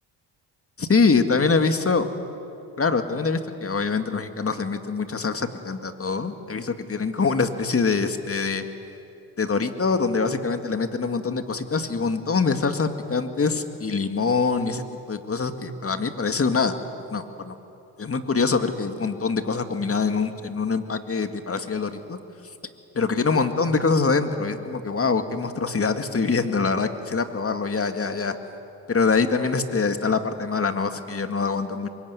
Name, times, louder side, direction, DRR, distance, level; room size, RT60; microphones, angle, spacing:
voice 1, 0.8-2.1 2.8-8.6 9.4-16.8 17.1-17.6 18.0-22.2 22.9-28.4 28.9-31.9, left 4 dB, 30° left, 8 dB, 2.0 m, -24 dB
23.5 x 22.0 x 9.6 m, 2.8 s
supercardioid pair, 70°, 45 cm